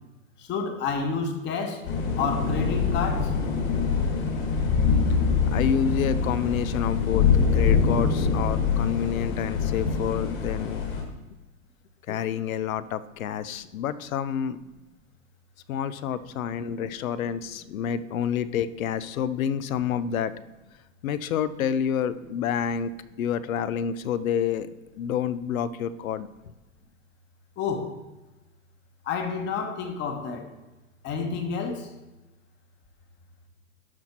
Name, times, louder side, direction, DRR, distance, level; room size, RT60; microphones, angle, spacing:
voice 1, 0.5-1.8 2.2-3.3 27.6-27.9 29.1-30.5 31.0-31.9, left 5 dB, 25° left, 5 dB, 1.1 m, -29 dB
sound 1, 1.8-11.0, left 5 dB, 50° left, 2.2 m, -24 dB
voice 2, 5.5-10.8 12.1-14.6 15.7-20.3 21.0-22.9 23.2-24.7 25.0-26.3, left 8 dB, 90° left, 16 dB, 0.6 m, -28 dB
12.0 x 4.3 x 4.4 m, 1.1 s
hypercardioid pair, 140°, 40 cm